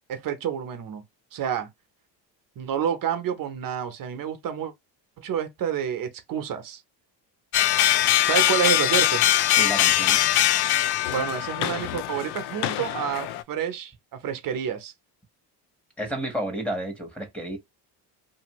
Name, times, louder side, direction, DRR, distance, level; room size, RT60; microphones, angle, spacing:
voice 1, 0.1-1.0 1.3-1.7 2.6-4.7 5.2-6.8 8.2-9.2 11.1-14.9, right 8 dB, 50° right, 0.7 m, -29 dB
sound 1, 7.5-13.4, left 12 dB, 60° left, 0.5 m, -22 dB
voice 2, 9.5-10.2 16.0-17.6, right 1 dB, 5° left, 1.1 m, -31 dB
2.7 x 2.6 x 3.0 m
cardioid pair, 120°, 44 cm